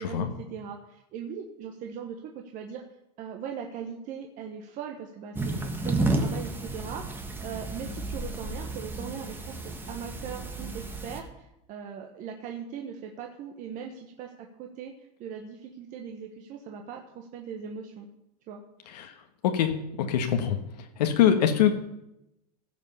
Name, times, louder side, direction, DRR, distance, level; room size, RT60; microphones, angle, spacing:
voice 1, 0.0-2.8 3.2-18.1 18.5-18.6, right 7 dB, 40° right, 2 dB, 1.3 m, -40 dB
sound 1, 5.3-11.2, right 2 dB, 10° right, 1.3 m, -32 dB
voice 2, 20.0-20.6 21.0-21.9, left 9 dB, 90° left, 4 dB, 1.5 m, -23 dB
16.0 x 5.4 x 6.9 m, 0.86 s
supercardioid pair, 140°, 20 cm